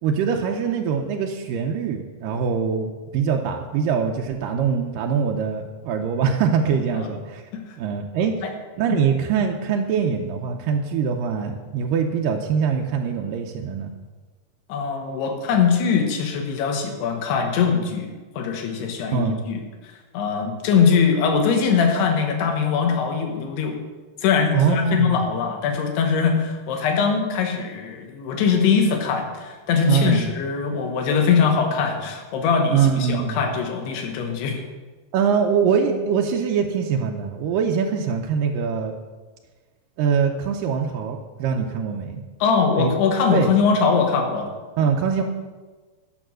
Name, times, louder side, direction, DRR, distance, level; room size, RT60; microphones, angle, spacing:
voice 1, 0.0-7.4 7.8-8.3 8.8-13.9 19.1-19.5 24.5-25.2 29.9-30.3 32.7-33.4 35.1-38.9 40.0-42.2 42.8-42.9 43.3-43.5 44.8-45.2, right 6 dB, 85° right, 2 dB, 1.9 m, -23 dB
voice 2, 14.7-18.1 18.3-19.6 20.1-23.7 24.2-34.6 42.4-44.5, left 6 dB, 80° left, 4 dB, 3.3 m, -21 dB
11.5 x 6.1 x 6.3 m, 1.3 s
omnidirectional pair, 4.7 m